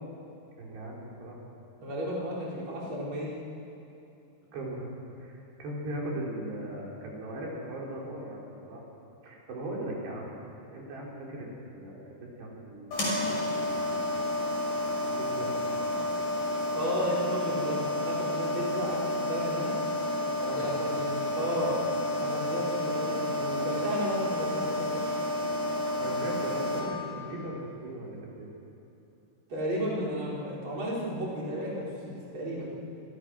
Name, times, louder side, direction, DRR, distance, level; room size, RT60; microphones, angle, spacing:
voice 1, 0.6-1.4 4.5-4.9 5.2-8.8 9.2-10.4 10.7-13.9 15.0-15.5 20.4-20.8 21.4-21.8 26.0-28.5, right 1 dB, 85° right, -3 dB, 6.7 m, -39 dB
voice 2, 1.8-3.3 16.7-19.7 20.6-21.8 22.2-25.1 29.5-32.8, equal, 30° right, -5 dB, 5.4 m, -33 dB
sound 1, 12.9-26.8, left 1 dB, 55° left, 7.9 m, -30 dB
27.5 x 26.5 x 6.5 m, 2.8 s
omnidirectional pair, 4.7 m